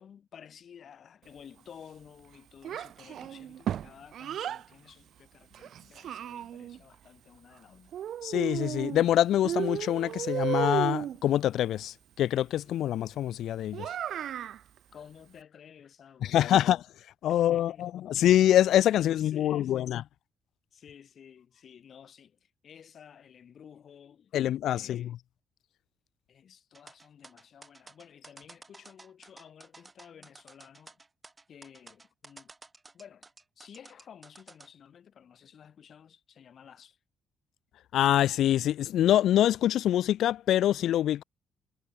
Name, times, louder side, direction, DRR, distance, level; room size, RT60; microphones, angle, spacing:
voice 1, 0.0-8.0 14.9-16.7 17.3-17.9 19.1-19.9 20.7-24.4 24.7-25.1 26.3-31.0 31.5-32.5 32.9-33.3 33.6-37.0, left 8 dB, 55° left, 1.6 m, -53 dB
Child speech kid speaking, 2.6-4.6 5.5-6.8 7.9-9.1 9.4-11.2 13.7-14.6, right 10 dB, 65° right, 0.4 m, -34 dB
voice 2, 8.2-13.9 16.2-16.8 17.2-20.0 24.3-25.2 37.9-41.2, left 12 dB, 75° left, 0.3 m, -25 dB
sound 1, 26.7-34.7, right 3 dB, 20° right, 6.6 m, -52 dB
cardioid pair, 90°, 0 cm